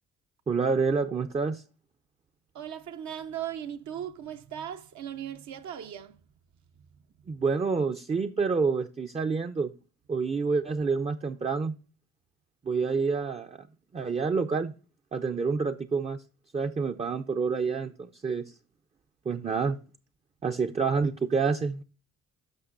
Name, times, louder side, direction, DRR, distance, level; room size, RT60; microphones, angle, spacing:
voice 1, 0.5-1.6 7.3-9.7 10.1-11.7 12.6-13.7 13.9-14.7 15.1-16.2 16.5-18.5 19.3-19.8 20.4-21.8, right 4 dB, 20° right, 0.5 m, -28 dB
voice 2, 2.5-6.2 6.9-7.0, right 10 dB, 70° right, 0.8 m, -38 dB
13.0 x 5.1 x 2.4 m
cardioid pair, 90°, 30 cm